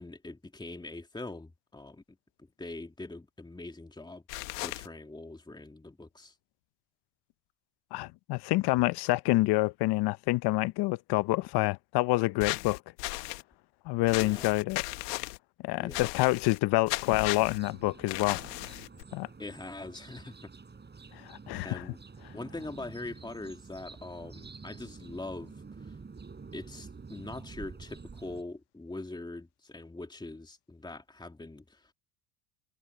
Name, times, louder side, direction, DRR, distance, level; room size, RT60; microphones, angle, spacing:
voice 1, 0.0-2.0 2.6-4.2 4.6-6.4 14.2-14.5 15.8-16.1 19.4-20.5 21.1-21.2 21.6-22.0 22.3-26.0 26.5-31.9, left 2 dB, 10° left, 3.1 m, -43 dB
sound 1, 4.3-4.9 12.4-13.4 14.1-15.4 15.9-16.6 16.9-17.6 18.1-19.0, left 22 dB, 80° left, 1.8 m, -36 dB
voice 2, 7.9-12.8 13.9-14.8 15.6-18.4 19.1-19.3 21.1-21.8, left 20 dB, 55° left, 0.9 m, -27 dB
sound 2, 17.1-28.4, right 4 dB, 20° right, 8.0 m, -48 dB
supercardioid pair, 90°, 47 cm